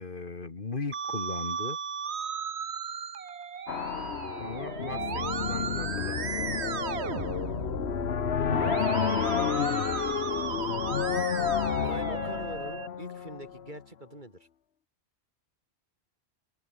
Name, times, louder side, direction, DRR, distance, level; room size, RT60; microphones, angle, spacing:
voice 1, 0.0-1.8 4.4-6.4 10.2-10.7, left 4 dB, 50° left, 1.9 m, -38 dB
Musical instrument, 0.9-12.9, right 6 dB, 80° right, 1.5 m, -35 dB
sound 1, 3.7-13.7, left 8 dB, 70° left, 1.2 m, -30 dB
voice 2, 8.6-9.9 10.9-11.0 11.7-14.5, right 1 dB, 45° right, 4.6 m, -44 dB
omnidirectional pair, 1.1 m